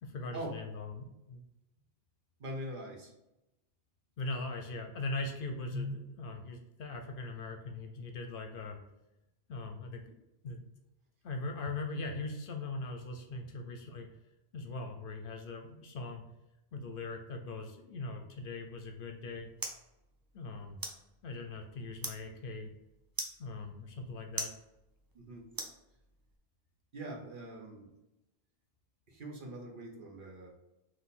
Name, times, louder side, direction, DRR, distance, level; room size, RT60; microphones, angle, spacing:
voice 1, 0.0-1.4 4.2-8.8 9.5-10.1 10.4-10.7 11.2-14.1 14.5-16.2 16.7-19.5 20.3-20.8 21.2-22.7 23.4-24.5, left 3 dB, 65° left, 4 dB, 0.7 m, -40 dB
voice 2, 2.4-3.1 5.7-6.0 25.1-25.5 26.9-27.9 29.1-30.5, equal, 55° right, 0 dB, 0.9 m, -42 dB
sound 1, 18.8-26.4, right 2 dB, 35° right, 0.4 m, -45 dB
3.7 x 2.7 x 4.1 m, 0.91 s
omnidirectional pair, 1.1 m